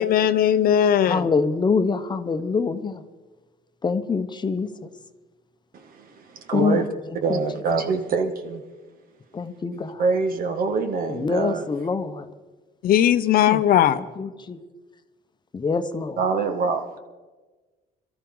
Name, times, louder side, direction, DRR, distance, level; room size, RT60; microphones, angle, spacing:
voice 1, 0.0-1.2 12.8-14.0, left 10 dB, 60° left, 12 dB, 0.7 m, -18 dB
voice 2, 1.1-3.0 3.8-4.9 6.5-6.8 7.3-7.4 9.3-10.0 11.1-12.3 13.5-13.6 14.2-14.6 15.5-16.2, left 4 dB, 25° left, 9 dB, 0.9 m, -25 dB
voice 3, 5.7-6.9 7.2-8.6 9.7-11.7 16.2-16.9, right 4 dB, 60° right, 5 dB, 1.8 m, -25 dB
22.5 x 13.5 x 3.9 m, 1.3 s
cardioid pair, 110°, 17 cm